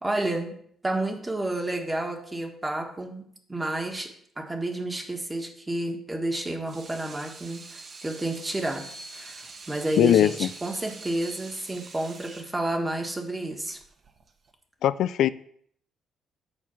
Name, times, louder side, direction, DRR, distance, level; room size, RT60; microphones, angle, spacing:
voice 1, 0.0-3.2 3.5-13.8, right 1 dB, 15° right, 4 dB, 1.5 m, -31 dB
Water tap faucet / Sink (filling or washing), 6.5-14.5, right 3 dB, 45° right, 1.3 m, -45 dB
voice 2, 10.0-10.5 14.8-15.3, left 11 dB, 75° left, 16 dB, 0.3 m, -20 dB
8.6 x 4.4 x 6.9 m, 0.63 s
cardioid pair, 90°, 0 cm